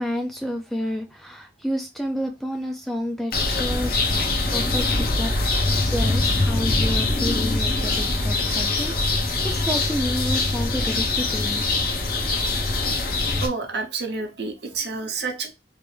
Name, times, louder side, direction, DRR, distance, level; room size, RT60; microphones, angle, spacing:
voice 1, 0.0-3.9 4.5-5.3 5.8-11.7, equal, ahead, 0.3 m, -30 dB
sound 1, 3.3-13.5, left 2 dB, 55° left, 0.8 m, -23 dB
voice 2, 13.4-15.5, right 4 dB, 65° right, 0.8 m, -29 dB
3.3 x 2.5 x 3.2 m
head